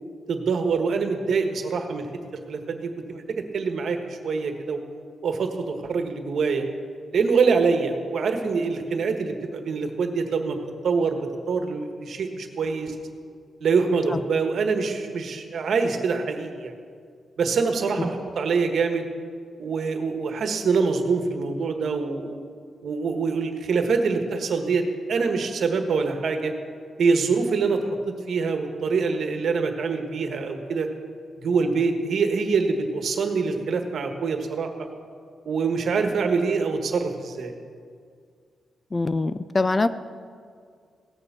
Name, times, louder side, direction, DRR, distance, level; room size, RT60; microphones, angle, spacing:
voice 1, 0.3-2.1 2.5-4.8 5.2-6.7 7.1-10.6 10.8-12.9 13.6-16.7 17.4-19.1 19.6-22.3 22.8-26.5 27.0-30.9 31.4-34.9 35.4-37.5, right 4 dB, 65° right, 5 dB, 1.4 m, -25 dB
voice 2, 38.9-39.9, left 3 dB, 25° left, 13 dB, 0.4 m, -23 dB
17.5 x 7.0 x 6.8 m, 2.1 s
wide cardioid pair, 125°, 0 cm